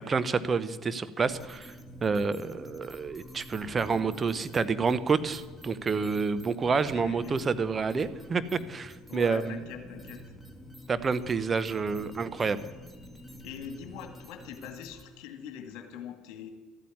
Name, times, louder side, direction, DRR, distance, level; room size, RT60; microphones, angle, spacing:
voice 1, 0.1-1.7 2.0-9.7 10.9-12.6, right 5 dB, 30° right, 13 dB, 0.9 m, -28 dB
sound 1, 1.2-15.0, equal, 5° left, 2.1 m, -48 dB
voice 2, 6.9-7.4 9.1-10.2 13.4-16.5, left 8 dB, 65° left, 6 dB, 2.1 m, -42 dB
13.0 x 8.5 x 9.6 m, 1.4 s
hypercardioid pair, 65°, 0 cm